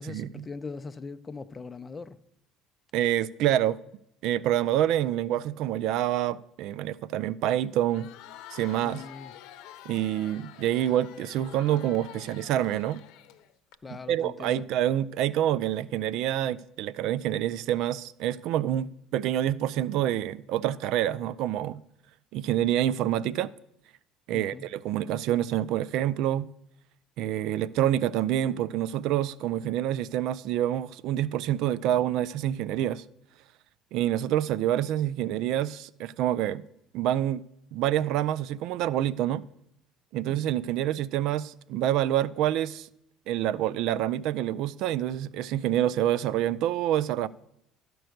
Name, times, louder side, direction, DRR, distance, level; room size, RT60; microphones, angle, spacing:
voice 1, 0.0-2.2 8.8-9.3 11.7-11.8 13.8-14.7 24.3-24.6, left 4 dB, 20° left, 0.4 m, -41 dB
voice 2, 2.9-3.8 4.2-8.1 8.5-9.0 9.9-13.0 13.9-21.8 22.3-23.5 24.3-26.5 27.2-33.0 33.9-36.6 36.9-37.4 37.7-39.4 40.1-42.9 43.3-47.3, right 12 dB, 70° right, 0.3 m, -27 dB
Crowd, 7.7-13.8, left 12 dB, 75° left, 0.7 m, -48 dB
12.5 x 4.6 x 6.4 m
cardioid pair, 115°, 0 cm